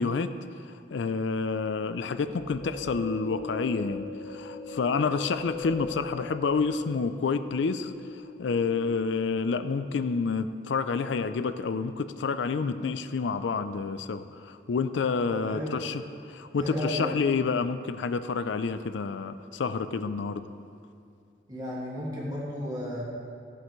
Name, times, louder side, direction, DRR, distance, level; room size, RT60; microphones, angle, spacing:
voice 1, 0.0-20.5, left 4 dB, 80° left, 11 dB, 0.4 m, -29 dB
sound 1, 2.2-9.5, left 2 dB, 35° left, 1.8 m, -40 dB
voice 2, 15.3-15.7 16.6-17.1 21.5-23.0, equal, 20° right, -5 dB, 1.8 m, -33 dB
14.5 x 7.9 x 3.1 m, 2.3 s
head